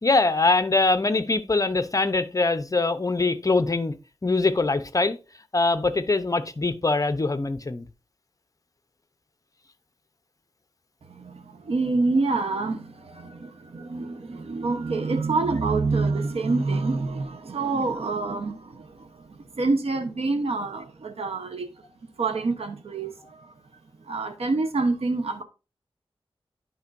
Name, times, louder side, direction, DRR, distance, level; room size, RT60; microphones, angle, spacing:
voice 1, 0.0-3.9 4.2-5.2 5.5-7.8, left 3 dB, 35° left, 0.7 m, -23 dB
voice 2, 11.1-21.7 22.2-23.5 24.0-25.4, right 3 dB, 80° right, 0.9 m, -27 dB
11.0 x 5.3 x 2.6 m
wide cardioid pair, 80°, 10 cm